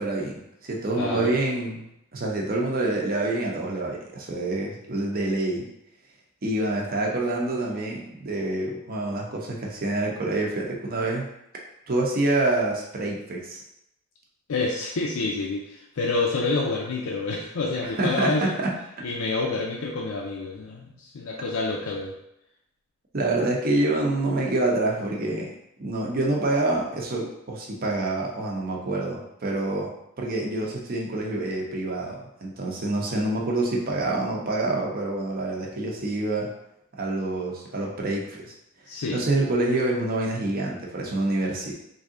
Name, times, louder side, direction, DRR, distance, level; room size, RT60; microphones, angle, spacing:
voice 1, 0.0-1.8 2.1-5.7 6.4-11.3 11.9-13.6 17.8-18.7 23.1-25.5 25.8-36.5 36.9-38.5 39.1-41.7, right 2 dB, 45° right, -1 dB, 0.7 m, -27 dB
voice 2, 0.9-1.3 14.5-18.5 19.0-22.1 38.9-39.2, left 3 dB, 80° left, -1 dB, 0.5 m, -28 dB
3.4 x 2.6 x 3.7 m, 0.81 s
head